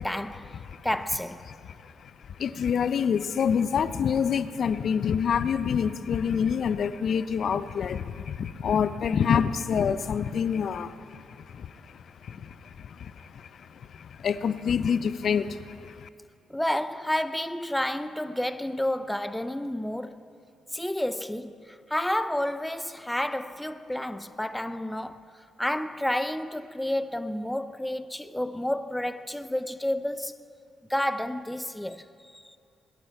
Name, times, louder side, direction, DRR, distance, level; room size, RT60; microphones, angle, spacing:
voice 1, 0.0-1.4 16.5-20.3 20.7-25.2 25.6-30.4 30.9-32.6, left 1 dB, 5° left, 0.6 m, -30 dB
voice 2, 1.4-16.1, left 7 dB, 65° left, 0.5 m, -27 dB
21.0 x 11.0 x 4.5 m
supercardioid pair, 60°, 0 cm